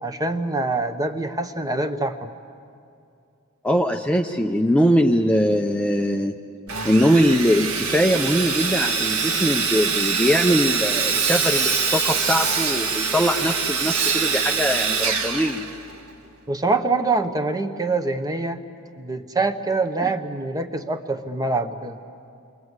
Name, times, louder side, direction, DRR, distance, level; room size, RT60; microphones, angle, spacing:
voice 1, 0.0-2.3 16.5-18.6 19.0-22.0, right 3 dB, 15° right, 8 dB, 1.0 m, -25 dB
voice 2, 3.6-6.4 6.8-15.6 20.0-20.1, equal, 5° left, 3 dB, 0.6 m, -21 dB
Sawing, 6.7-16.1, right 5 dB, 75° right, 1.8 m, -24 dB
29.0 x 23.0 x 8.1 m, 2.4 s
head